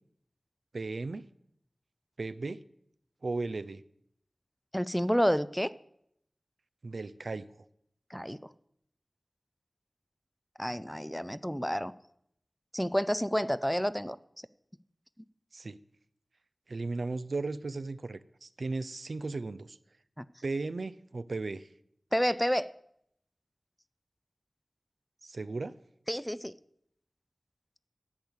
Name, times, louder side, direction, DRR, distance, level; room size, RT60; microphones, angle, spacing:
voice 1, 0.7-1.2 2.2-2.6 3.2-3.8 6.8-7.5 15.5-15.8 16.7-19.8 20.4-21.7 25.2-25.7, right 3 dB, 80° right, 14 dB, 0.4 m, -36 dB
voice 2, 4.7-5.7 8.1-8.4 10.6-11.9 12.7-14.2 20.2-20.3 22.1-22.7 26.1-26.5, equal, 5° left, 16 dB, 0.4 m, -29 dB
10.5 x 8.2 x 6.3 m, 0.74 s
wide cardioid pair, 60°, 0 cm